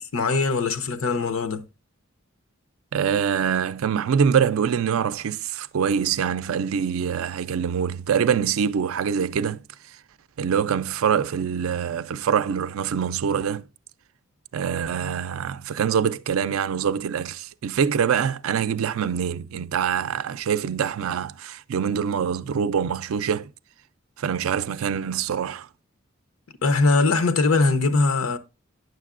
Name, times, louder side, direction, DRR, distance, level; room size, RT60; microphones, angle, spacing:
voice 1, 0.0-1.6 26.6-28.4, left 3 dB, 90° left, 0.7 m, -21 dB
voice 2, 2.9-9.6 10.4-13.6 14.5-23.5 24.2-25.7, right 7 dB, 85° right, 0.4 m, -24 dB
9.3 x 6.5 x 2.4 m
head